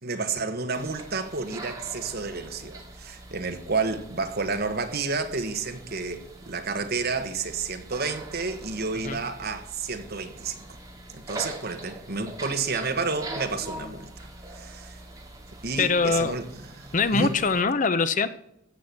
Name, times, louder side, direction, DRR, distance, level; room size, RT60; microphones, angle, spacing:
voice 1, 0.0-10.6 11.1-14.1 14.5-15.0 15.6-16.4 16.8-17.3, right 4 dB, 50° right, 1.4 m, -30 dB
sound 1, 0.7-17.6, right 2 dB, 15° right, 2.4 m, -43 dB
voice 2, 15.8-16.4 16.9-18.3, left 4 dB, 40° left, 0.7 m, -23 dB
15.0 x 6.1 x 8.6 m
head